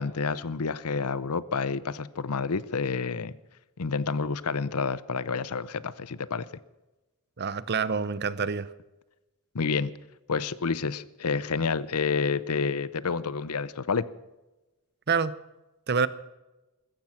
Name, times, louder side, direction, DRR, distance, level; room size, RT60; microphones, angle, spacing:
voice 1, 0.0-3.3 3.8-6.5 9.5-10.0 10.3-14.1, left 5 dB, 85° left, 0.7 m, -29 dB
voice 2, 7.4-8.7 15.1-15.3 15.9-16.1, right 5 dB, 50° right, 0.7 m, -26 dB
15.5 x 14.0 x 5.9 m
head